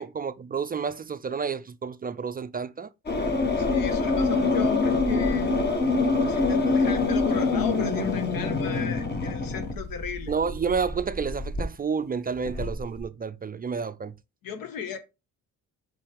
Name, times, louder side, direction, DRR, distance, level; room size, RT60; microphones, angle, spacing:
voice 1, 0.0-2.9 10.3-14.1, right 5 dB, 25° right, 0.4 m, -30 dB
sound 1, 3.1-11.6 12.4-13.0, left 3 dB, 30° left, 1.4 m, -25 dB
voice 2, 3.6-5.5 6.1-10.3 14.4-15.0, left 7 dB, 80° left, 1.4 m, -36 dB
5.6 x 5.5 x 3.5 m
cardioid pair, 110°, 34 cm